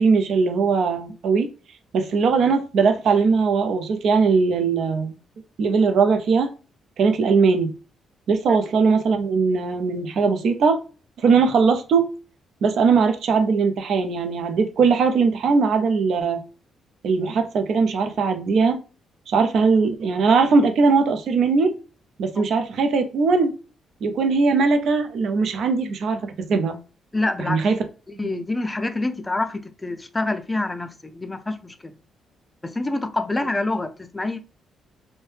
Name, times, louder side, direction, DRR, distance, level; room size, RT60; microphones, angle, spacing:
voice 1, 0.0-1.5 1.9-5.2 5.6-6.5 7.0-7.7 8.3-10.8 11.2-12.1 12.6-16.4 17.0-18.8 19.3-21.8 22.2-23.5 24.0-26.8 27.4-27.8 28.2-28.4, right 4 dB, 70° right, 0.5 m, -20 dB
voice 2, 27.1-27.6 28.2-31.9 32.6-34.4, left 2 dB, 20° left, 0.4 m, -26 dB
2.7 x 2.1 x 3.2 m
cardioid pair, 75°, 0 cm